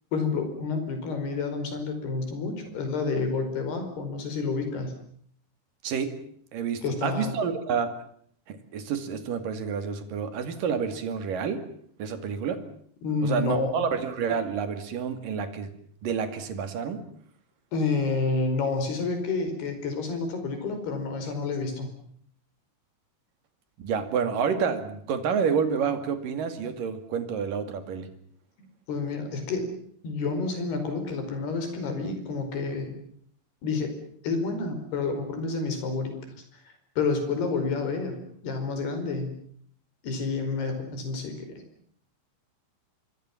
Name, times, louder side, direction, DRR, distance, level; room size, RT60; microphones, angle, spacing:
voice 1, 0.1-4.9 6.8-7.3 13.0-13.9 17.7-21.9 28.9-29.7 30.0-32.9 33.6-33.9 34.2-36.2 37.0-38.2 38.4-39.4 40.0-41.6, left 4 dB, 60° left, 7 dB, 6.9 m, -29 dB
voice 2, 5.8-6.2 6.5-7.9 8.5-11.7 12.0-12.7 13.2-15.7 16.0-17.1 23.8-28.1, right 6 dB, 55° right, 9 dB, 3.5 m, -29 dB
26.0 x 23.5 x 7.3 m, 0.63 s
omnidirectional pair, 5.4 m